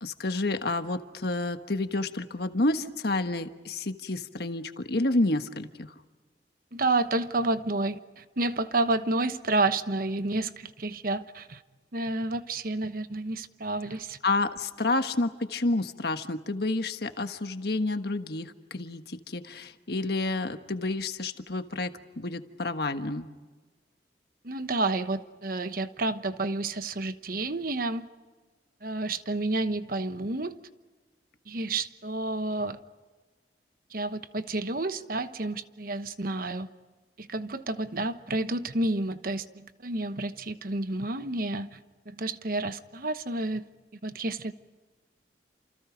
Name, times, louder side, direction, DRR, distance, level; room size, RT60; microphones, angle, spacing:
voice 1, 0.0-5.9 14.2-23.3, left 2 dB, 60° left, 8 dB, 1.4 m, -29 dB
voice 2, 6.7-11.6 11.9-14.2 24.4-28.1 28.8-30.6 31.5-32.8 33.9-36.7 37.2-41.8 42.1-43.7 44.0-44.5, right 2 dB, 55° right, 10 dB, 1.1 m, -30 dB
29.5 x 28.0 x 5.2 m, 1.3 s
head